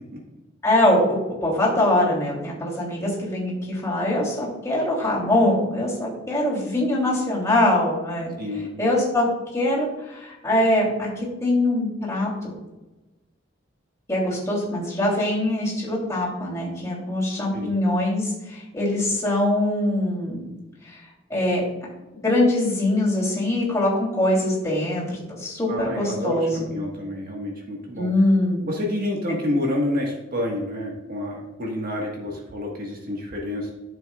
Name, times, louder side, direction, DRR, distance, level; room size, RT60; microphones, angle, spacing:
voice 1, 0.6-8.3 8.8-9.2 9.5-12.5 14.1-20.4 20.8-21.0 21.3-21.6 22.2-26.7 28.0-28.7, left 1 dB, 15° left, -5 dB, 3.3 m, -23 dB
voice 2, 8.4-8.8 17.5-17.7 25.7-28.1 28.6-33.7, left 1 dB, 50° right, -1 dB, 1.6 m, -28 dB
13.0 x 7.3 x 2.4 m, 1.1 s
head